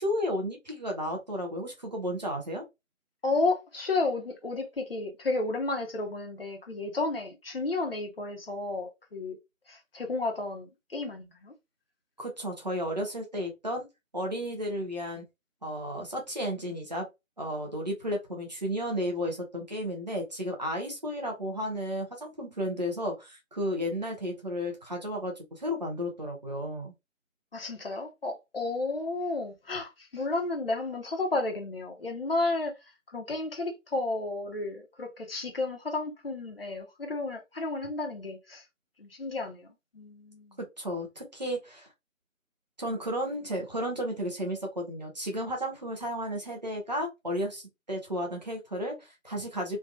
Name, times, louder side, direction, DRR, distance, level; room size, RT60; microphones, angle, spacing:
voice 1, 0.0-2.6 12.2-13.9 14.1-15.2 15.6-17.1 17.4-26.9 40.8-41.9 42.8-49.8, equal, 30° right, 0.8 m, -33 dB
voice 2, 3.2-9.4 9.7-11.5 27.5-32.7 33.1-38.6 39.0-39.7 39.9-40.6, left 3 dB, 45° left, 1.0 m, -32 dB
3.3 x 2.6 x 2.4 m
figure-of-eight pair, 155°, 41 cm